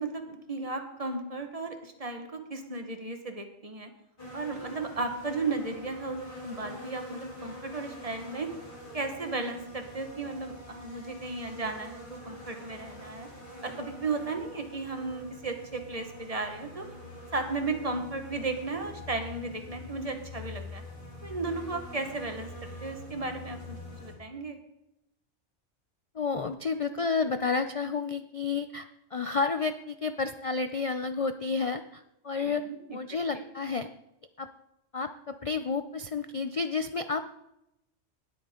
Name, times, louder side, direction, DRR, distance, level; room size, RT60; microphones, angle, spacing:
voice 1, 0.0-3.9 4.3-8.5 8.9-13.3 13.6-16.9 17.3-20.8 21.2-24.6 32.7-33.0 33.3-33.4, right 3 dB, 30° right, 5 dB, 1.4 m, -35 dB
sound 1, 4.2-24.1, left 1 dB, 40° left, 3.4 m, -45 dB
voice 2, 26.1-32.6 32.9-33.9 34.4-34.5 34.9-37.4, left 4 dB, 55° left, 9 dB, 0.3 m, -31 dB
19.5 x 8.6 x 3.7 m, 0.85 s
omnidirectional pair, 1.3 m